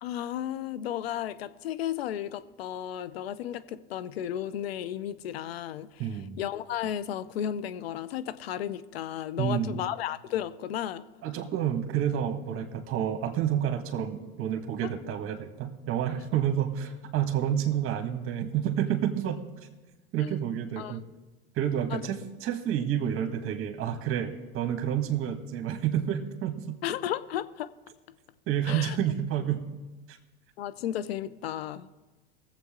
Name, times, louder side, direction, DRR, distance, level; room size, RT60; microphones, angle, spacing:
voice 1, 0.0-6.0 6.4-11.0 20.2-20.4 20.8-21.0 21.9-22.0 26.8-27.7 28.7-29.0 30.6-31.9, left 10 dB, 85° left, 14 dB, 0.6 m, -34 dB
voice 2, 6.0-6.4 9.4-9.8 11.2-19.4 20.1-21.0 21.6-26.8 28.5-29.7 30.1-30.2, right 10 dB, 45° right, 7 dB, 1.7 m, -29 dB
20.0 x 7.7 x 3.7 m, 1.2 s
hypercardioid pair, 95°, 30 cm